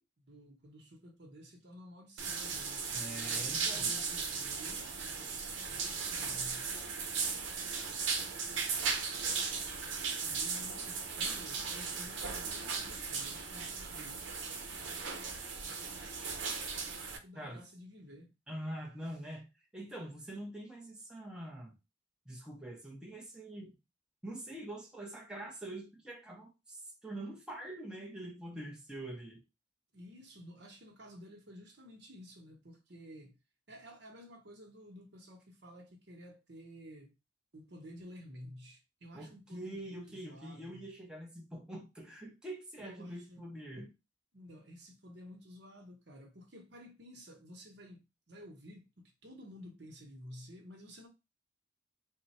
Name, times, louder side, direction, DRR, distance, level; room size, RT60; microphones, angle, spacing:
voice 1, 0.2-6.7 10.2-14.2 17.2-18.3 29.9-33.3 33.7-37.1 37.5-40.9 42.8-43.4 44.3-51.1, equal, 65° right, 1.0 m, -53 dB
sound 1, 2.2-17.2, right 5 dB, 90° right, 0.7 m, -37 dB
voice 2, 2.9-4.0 17.3-17.6 18.5-21.8 22.3-23.7 24.2-29.4 39.1-43.9, right 1 dB, 5° right, 0.7 m, -44 dB
3.7 x 2.2 x 4.2 m
head